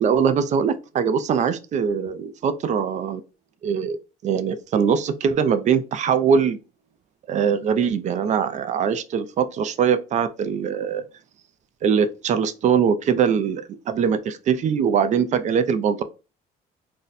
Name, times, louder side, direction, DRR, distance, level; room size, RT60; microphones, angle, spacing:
voice 1, 0.0-3.2 3.6-4.0 4.2-6.6 7.3-11.0 11.8-16.0, right 7 dB, 45° right, 0.4 m, -22 dB
2.6 x 2.1 x 3.9 m
cardioid pair, 110°, 17 cm